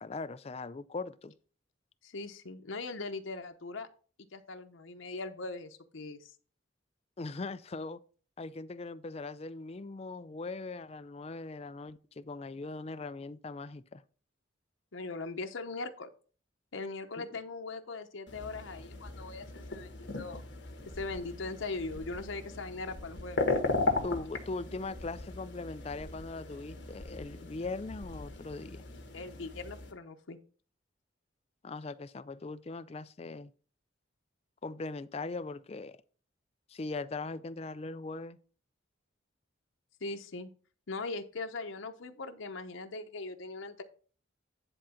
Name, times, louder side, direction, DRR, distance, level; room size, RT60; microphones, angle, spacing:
voice 1, 0.0-1.3 7.2-8.0 8.4-14.0 17.2-17.3 24.0-28.9 31.6-33.5 34.6-36.0 36.7-38.4, left 3 dB, 30° left, 0.4 m, -40 dB
voice 2, 2.0-3.9 4.3-6.3 14.9-16.1 16.7-20.4 20.9-23.4 29.1-30.4 40.0-40.5 40.9-43.8, left 3 dB, 90° left, 0.8 m, -40 dB
sound 1, 18.3-29.9, left 3 dB, 65° left, 1.7 m, -37 dB
sound 2, 20.8-21.3 21.7-22.3 22.7-23.3 23.7-24.3 24.7-25.3 25.7-26.3 26.7-27.3 27.7-28.3, left 1 dB, 15° right, 1.9 m, -51 dB
10.0 x 3.8 x 5.7 m
head